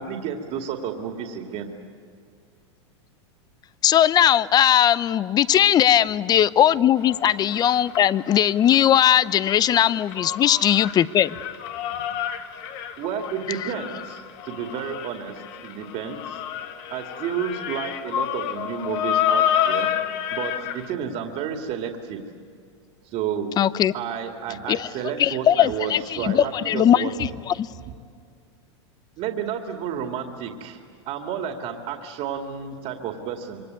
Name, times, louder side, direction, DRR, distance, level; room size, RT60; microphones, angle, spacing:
voice 1, 0.0-1.7 11.8-12.0 13.0-16.4 16.9-19.9 20.3-22.2 23.1-23.5 23.9-27.2 27.7-27.8 29.2-30.8 31.1-33.6, right 7 dB, 45° right, 4 dB, 2.4 m, -31 dB
voice 2, 3.8-11.4 13.5-13.6 23.6-23.9 24.7-24.9 25.2-27.7, left 10 dB, 25° left, 18 dB, 0.7 m, -19 dB
sound 1, 7.1-9.1 9.3-20.9, left 10 dB, 55° left, 1.6 m, -29 dB
26.5 x 23.5 x 9.5 m, 2.2 s
hypercardioid pair, 125°, 15 cm